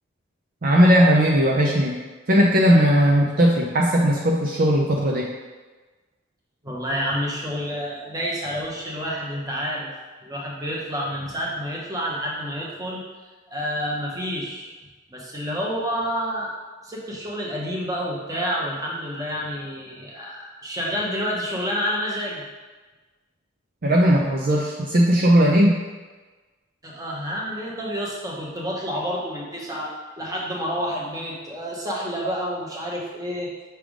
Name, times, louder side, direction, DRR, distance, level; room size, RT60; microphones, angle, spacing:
voice 1, 0.6-2.0 2.3-5.3 23.8-25.8, equal, 45° right, -2 dB, 0.5 m, -18 dB
voice 2, 6.6-9.9 10.2-13.0 13.5-14.7 15.1-16.5 16.8-22.4 26.8-33.5, equal, 20° right, -3 dB, 1.0 m, -29 dB
6.1 x 3.4 x 5.0 m, 1.3 s
head